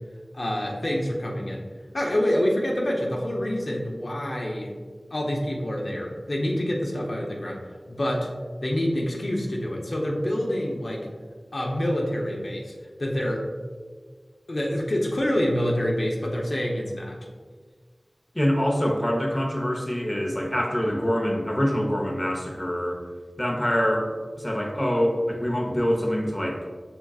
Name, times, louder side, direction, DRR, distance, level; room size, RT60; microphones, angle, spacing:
voice 1, 0.3-1.6 1.9-4.7 5.1-7.6 7.9-8.3 8.6-11.1 11.5-12.7 13.0-13.5 14.5-17.2, equal, 60° left, -2 dB, 0.7 m, -26 dB
voice 2, 18.3-23.0 23.4-24.1 24.4-26.6, equal, 15° left, -1 dB, 0.7 m, -25 dB
5.8 x 3.7 x 2.4 m, 1.5 s
wide cardioid pair, 60°, 0 cm